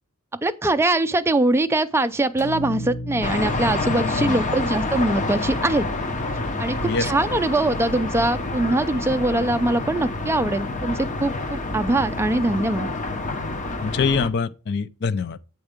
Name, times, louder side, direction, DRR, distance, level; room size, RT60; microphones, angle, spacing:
voice 1, 0.4-5.9 6.6-12.9, right 2 dB, 10° right, 0.4 m, -22 dB
sound 1, 2.4-6.6, equal, 65° left, 1.7 m, -36 dB
sound 2, 3.2-14.3, left 2 dB, 35° left, 0.8 m, -28 dB
voice 2, 13.8-15.4, left 5 dB, 50° left, 0.5 m, -24 dB
8.0 x 4.5 x 5.1 m
head